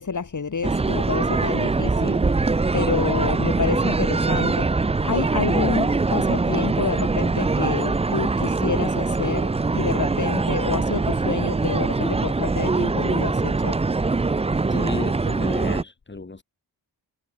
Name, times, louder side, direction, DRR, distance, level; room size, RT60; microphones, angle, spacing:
voice 1, 0.0-2.2 2.7-4.7 5.0-13.8, left 5 dB, 45° left, 4.2 m, -28 dB
sound 1, 0.6-15.8, right 3 dB, 15° right, 0.4 m, -23 dB
voice 2, 14.7-16.4, left 3 dB, 25° left, 7.3 m, -33 dB
wide cardioid pair, 160°, 42 cm